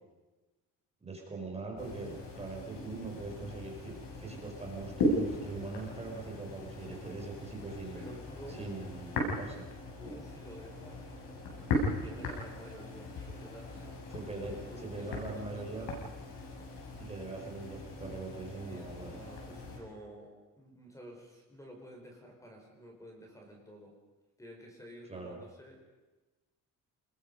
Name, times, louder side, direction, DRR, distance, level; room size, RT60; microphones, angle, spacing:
voice 1, 1.0-8.0 8.5-9.7 14.1-16.0 17.0-19.3 25.1-25.4, right 3 dB, 20° right, 1 dB, 5.0 m, -42 dB
sound 1, 1.8-19.8, left 1 dB, 80° left, 7.2 m, -38 dB
voice 2, 7.9-8.7 10.0-11.1 11.7-13.9 14.3-15.9 18.6-23.9 24.4-25.9, equal, 10° left, 1 dB, 4.8 m, -51 dB
29.5 x 21.0 x 5.4 m, 1.2 s
cardioid pair, 145°, 34 cm